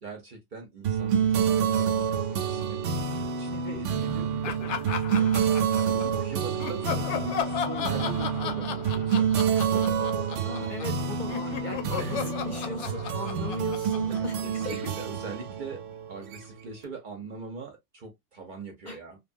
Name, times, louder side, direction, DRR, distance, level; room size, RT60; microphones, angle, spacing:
voice 1, 0.0-2.8 3.1-5.3 5.9-9.9 12.0-12.3 14.1-14.3 14.6-15.8 16.1-19.2, right 3 dB, 50° right, 0.7 m, -42 dB
sound 1, 0.8-16.7, right 7 dB, 80° right, 0.9 m, -28 dB
voice 2, 3.5-4.2 10.4-14.9 18.9-19.0, left 1 dB, 50° left, 0.7 m, -38 dB
Laughter, 4.4-6.2 6.6-11.0 11.3-14.9, left 8 dB, 75° left, 0.9 m, -35 dB
2.8 x 2.3 x 2.4 m
omnidirectional pair, 1.2 m